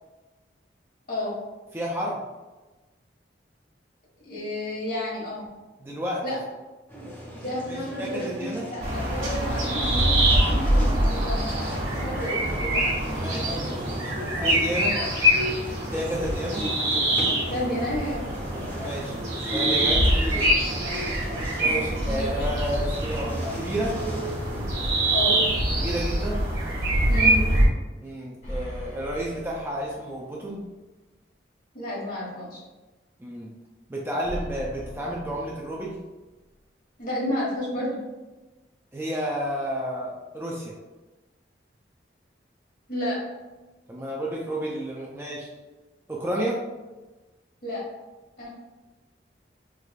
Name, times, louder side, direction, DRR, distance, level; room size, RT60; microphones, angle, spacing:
voice 1, 1.7-2.2 5.8-6.2 7.7-8.7 13.1-15.0 15.9-16.7 18.8-20.5 21.6-24.0 25.7-26.5 28.0-30.7 33.2-33.5 33.9-36.0 38.9-40.7 43.9-45.5 46.1-46.6, equal, 15° right, -3 dB, 0.3 m, -31 dB
voice 2, 4.2-5.5 6.2-6.4 7.3-8.8 9.1-12.9 17.5-18.2 21.6-21.8 25.1-25.4 27.1-27.4 31.7-32.6 37.0-38.0 42.9-43.2 47.6-47.8 48.4-48.5, left 1 dB, 50° left, -6 dB, 1.5 m, -31 dB
sound 1, 6.9-26.0, equal, 10° left, 0.9 m, -41 dB
sound 2, 8.8-27.7, right 1 dB, 85° right, 1.1 m, -24 dB
sound 3, 21.9-24.0 24.3-24.4 28.4-30.4 34.2-36.2, equal, 85° left, 1.3 m, -38 dB
4.5 x 2.4 x 2.3 m, 1.2 s
head